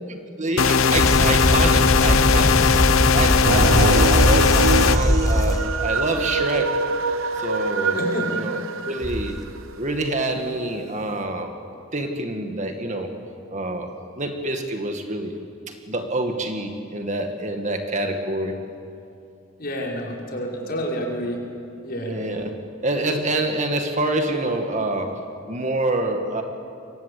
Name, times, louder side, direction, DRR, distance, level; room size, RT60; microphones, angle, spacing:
voice 1, 0.1-2.6 3.1-6.9 7.4-8.6 8.9-9.3 9.8-11.5 11.9-13.1 13.5-15.3 15.7-18.6 22.0-22.6 22.8-26.4, right 2 dB, 35° right, 5 dB, 2.1 m, -27 dB
sound 1, 0.6-5.0, left 6 dB, 80° left, 0.8 m, -19 dB
sound 2, 0.9-5.8 9.0-9.4, equal, 15° left, 1.3 m, -21 dB
sound 3, 3.4-9.6, right 4 dB, 75° right, 1.1 m, -25 dB
voice 2, 3.7-4.3 7.9-8.3 19.6-21.4 21.8-22.2, equal, 45° left, -1 dB, 5.5 m, -29 dB
29.0 x 23.5 x 8.5 m, 2.6 s
head